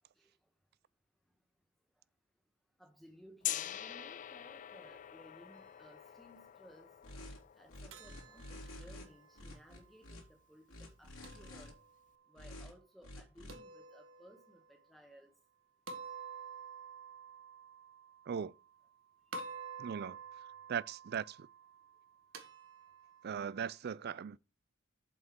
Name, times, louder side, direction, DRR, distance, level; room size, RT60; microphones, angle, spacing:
voice 1, 2.8-6.9 7.6-11.7 12.3-15.3, equal, ahead, 1.2 m, -59 dB
Gong, 3.4-9.3, left 12 dB, 40° left, 0.3 m, -45 dB
sound 1, 7.0-7.4 7.7-9.0 9.3-10.2 10.7-11.7 12.3-12.7 13.0-13.5, left 1 dB, 90° left, 3.1 m, -49 dB
sound 2, 7.9-10.0 11.2-12.2 13.5-14.7 15.9-19.0 19.3-23.7, right 4 dB, 75° right, 1.4 m, -50 dB
voice 2, 19.8-20.2 20.7-21.5 23.2-24.4, right 7 dB, 50° right, 0.4 m, -38 dB
7.5 x 5.4 x 6.0 m
head